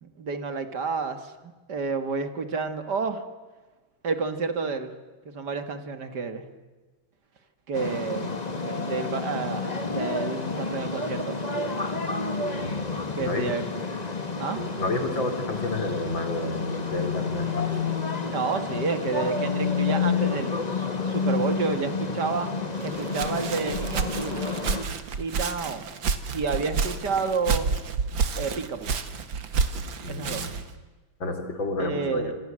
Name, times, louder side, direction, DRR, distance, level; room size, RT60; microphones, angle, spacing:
voice 1, 0.0-1.3 1.7-3.2 4.0-4.9 5.3-6.4 7.7-11.4 13.2-13.7 14.4-14.6 18.3-22.5 22.8-24.4 25.2-25.9 26.3-27.7 28.4-28.9 30.1-30.5 31.8-32.3, right 4 dB, 60° right, 9 dB, 2.5 m, -30 dB
sound 1, 7.7-24.8, left 4 dB, 20° left, 1.8 m, -29 dB
voice 2, 12.6-13.4 14.6-17.7 30.0-30.5 31.2-32.3, left 2 dB, 75° left, 6 dB, 4.4 m, -31 dB
Walk footsteps, 22.8-30.7, right 5 dB, 75° right, 2.4 m, -30 dB
27.0 x 26.0 x 7.7 m, 1.3 s
omnidirectional pair, 2.1 m